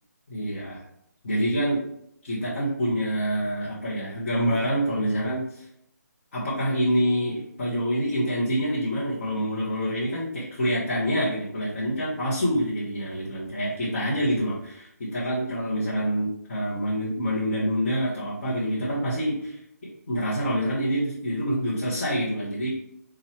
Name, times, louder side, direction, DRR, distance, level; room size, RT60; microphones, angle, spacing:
voice 1, 0.3-0.8 1.2-1.8 2.2-5.7 6.3-19.6 20.1-22.7, equal, 40° left, -9 dB, 1.4 m, -26 dB
5.5 x 2.9 x 3.2 m, 0.74 s
figure-of-eight pair, 145°, 10 cm